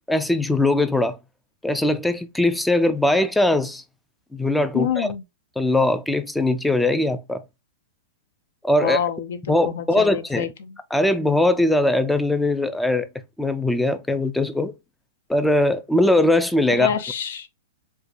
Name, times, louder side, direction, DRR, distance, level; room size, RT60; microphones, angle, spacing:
voice 1, 0.1-1.2 1.6-3.8 4.3-5.1 5.6-7.4 8.6-9.0 9.5-10.5 10.9-13.1 13.4-14.7 15.3-16.9, left 1 dB, 5° left, 0.3 m, -20 dB
voice 2, 4.7-5.2 8.8-10.8 16.7-17.5, left 8 dB, 70° left, 0.7 m, -27 dB
4.6 x 2.2 x 2.5 m
hypercardioid pair, 135°, 0 cm